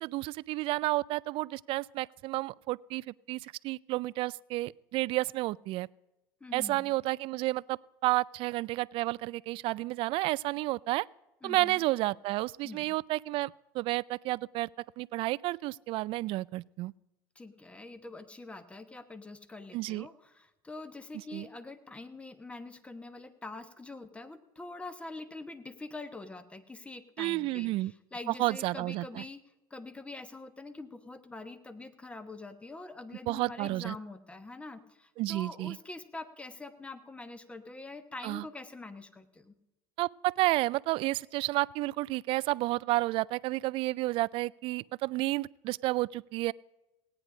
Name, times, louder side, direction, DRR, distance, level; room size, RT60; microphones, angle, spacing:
voice 1, 0.0-5.9 6.5-11.1 11.4-14.7 15.0-16.9 19.7-20.1 21.3-21.5 27.2-27.9 28.4-29.2 33.3-33.9 35.2-35.8 38.2-38.4 40.0-46.5, right 19 dB, 50° right, 21 dB, 0.3 m, -31 dB
voice 2, 6.4-6.9 11.4-11.8 12.6-12.9 17.3-29.4 29.7-39.5, left 2 dB, 10° left, 11 dB, 1.1 m, -45 dB
17.5 x 9.7 x 5.0 m, 1.0 s
supercardioid pair, 105°, 11 cm